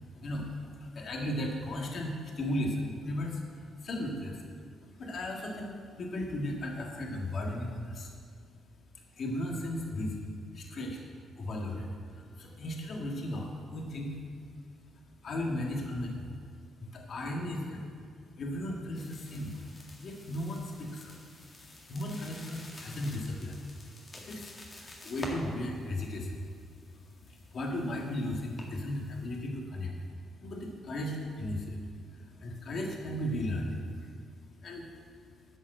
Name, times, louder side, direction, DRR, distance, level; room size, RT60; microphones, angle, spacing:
voice 1, 0.2-4.7 5.0-8.1 8.9-14.2 15.2-16.5 16.8-17.8 18.4-21.2 21.7-23.6 24.2-26.5 26.9-34.1 34.6-34.9, left 1 dB, 55° left, 0 dB, 1.8 m, -36 dB
sound 1, 18.9-29.3, left 2 dB, 30° left, 1.9 m, -49 dB
11.5 x 5.4 x 7.6 m, 2.2 s
cardioid pair, 90°, 0 cm